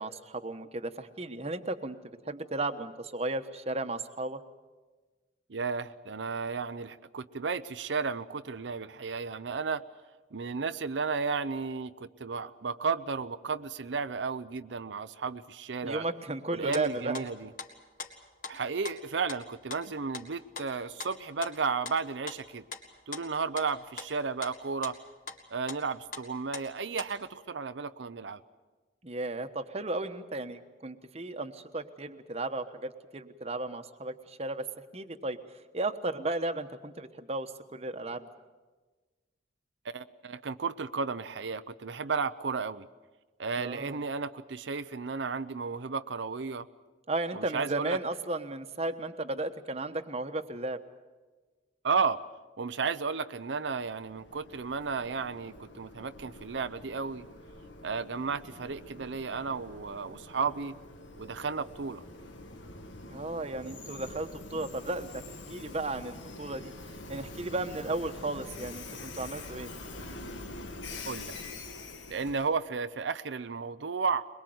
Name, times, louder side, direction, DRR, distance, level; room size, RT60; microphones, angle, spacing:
voice 1, 0.0-2.0 2.3-4.4 15.8-17.3 29.0-34.6 34.9-35.4 35.7-38.3 43.6-44.0 47.1-50.8 63.1-65.2 65.5-66.7 67.1-69.7, right 2 dB, 35° right, 9 dB, 1.1 m, -34 dB
voice 2, 5.5-9.8 10.3-16.0 16.5-17.5 18.5-22.6 23.1-25.0 25.5-28.4 39.9-42.9 43.4-46.7 47.3-48.0 51.8-52.2 52.6-57.3 57.8-60.8 61.2-62.0 71.0-71.3 72.1-74.3, right 5 dB, 80° right, 11 dB, 0.7 m, -33 dB
sound 1, 16.5-16.9 17.1-17.7 18.0-18.6 18.8-19.4 19.7-24.6 24.8-25.0 25.3-25.4 25.7-27.3, left 5 dB, 50° left, 2.2 m, -42 dB
Train, 53.8-72.6, left 2 dB, 90° left, 1.9 m, -45 dB
22.5 x 22.0 x 7.9 m, 1.3 s
head